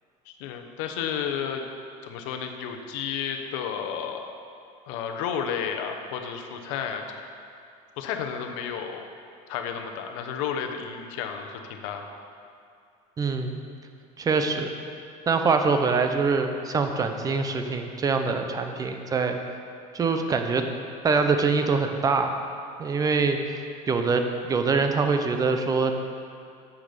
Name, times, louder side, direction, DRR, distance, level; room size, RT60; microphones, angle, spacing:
voice 1, 0.4-1.7 2.0-4.3 4.9-7.0 8.0-9.1 9.5-12.1, left 7 dB, 75° left, 5 dB, 0.9 m, -32 dB
voice 2, 13.2-13.6 14.2-14.7 15.3-19.4 19.9-20.7 21.0-22.4 22.8-23.6 23.9-25.9, right 4 dB, 20° right, 6 dB, 0.7 m, -24 dB
7.5 x 6.5 x 6.7 m, 2.4 s
cardioid pair, 140°, 17 cm